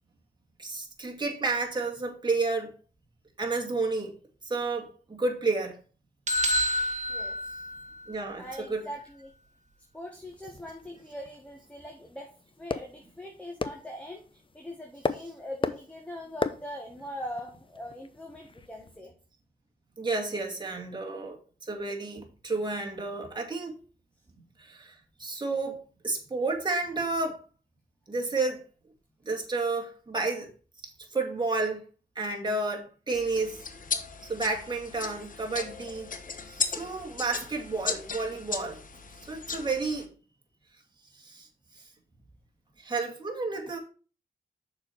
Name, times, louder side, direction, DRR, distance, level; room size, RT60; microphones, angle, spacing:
voice 1, 0.6-2.8 3.4-4.1 4.4-5.8 8.1-8.8 20.0-23.8 24.6-25.8 26.0-27.4 28.1-28.7 29.2-30.5 31.1-31.8 32.2-33.6 34.3-36.1 36.5-38.8 39.3-40.1 41.1-41.5 41.8-41.9 42.8-43.8, right 3 dB, 25° right, 2.2 m, -31 dB
sound 1, 6.3-8.2, left 1 dB, 45° right, 1.3 m, -28 dB
voice 2, 8.4-9.3 9.9-12.3 12.6-14.2 14.5-19.1, left 1 dB, 10° left, 1.5 m, -41 dB
sound 2, 10.2-19.0, left 4 dB, 30° left, 0.6 m, -38 dB
sound 3, 33.1-40.0, left 5 dB, 50° left, 1.0 m, -36 dB
6.5 x 4.5 x 5.6 m
cardioid pair, 60°, 17 cm